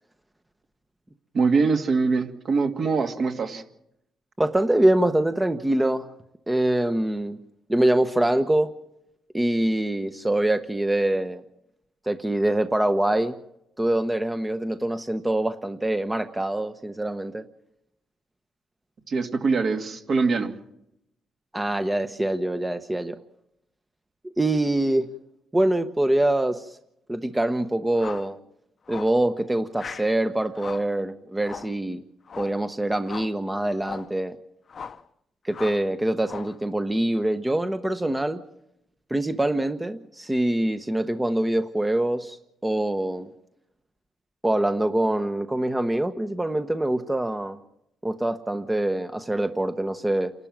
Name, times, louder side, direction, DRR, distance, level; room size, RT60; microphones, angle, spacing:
voice 1, 1.3-3.6 19.1-20.5, right 4 dB, 50° right, 4 dB, 2.3 m, -23 dB
voice 2, 4.4-6.1 6.5-7.4 7.7-8.7 9.3-11.4 12.1-13.4 13.8-17.4 21.5-23.2 24.4-25.1 25.5-26.8 27.1-28.4 28.9-32.0 32.4-34.4 35.4-38.4 39.1-42.4 42.6-43.3 44.4-47.6 48.0-50.3, right 1 dB, 10° right, 8 dB, 1.0 m, -24 dB
sound 1, 27.9-28.3 28.9-29.2 29.7-30.1 30.5-30.9 31.4-31.8 32.3-32.6 33.0-33.4 33.8-34.1 34.7-35.1 35.5-35.9 36.2-36.6, left 6 dB, 45° left, 0.9 m, -39 dB
28.5 x 12.0 x 7.4 m, 0.81 s
cardioid pair, 90°, 0 cm